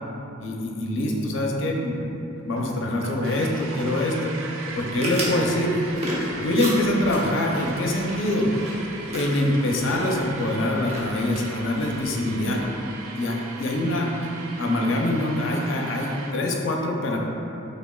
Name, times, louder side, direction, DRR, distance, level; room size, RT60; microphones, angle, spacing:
voice 1, 0.4-4.4 4.8-5.8 6.4-8.5 9.1-12.6 13.2-14.1 14.6-17.2, left 1 dB, 65° left, 0 dB, 0.5 m, -24 dB
sound 1, 2.5-16.3, right 3 dB, 75° right, 0.4 m, -39 dB
sound 2, 4.7-12.6, equal, 35° right, 0.8 m, -35 dB
6.0 x 3.3 x 2.2 m, 2.9 s
head